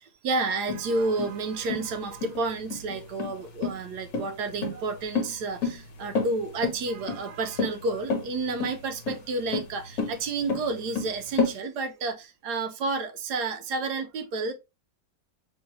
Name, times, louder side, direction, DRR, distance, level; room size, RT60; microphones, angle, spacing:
voice 1, 0.2-14.5, right 3 dB, 70° right, 1.0 m, -30 dB
sound 1, 0.7-11.5, left 4 dB, 50° left, 1.2 m, -31 dB
4.2 x 3.1 x 3.1 m
omnidirectional pair, 2.0 m